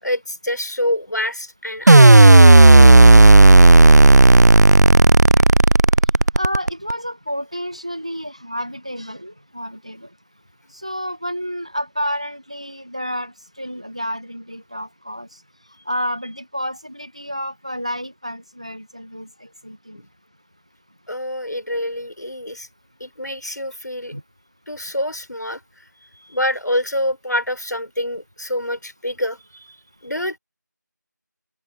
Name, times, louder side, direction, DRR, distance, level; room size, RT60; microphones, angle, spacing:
voice 1, 0.0-2.3 5.4-5.5 19.9-20.0 21.1-22.7 23.0-24.1 24.7-25.6 26.3-29.8 30.0-30.4, left 1 dB, 65° left, 5.0 m, -26 dB
sound 1, 1.9-6.9, right 2 dB, 60° right, 0.4 m, -8 dB
voice 2, 6.3-10.1 10.7-15.4 15.8-20.0 24.1-24.2, equal, 20° right, 1.0 m, -30 dB
figure-of-eight pair, 175°, 10 cm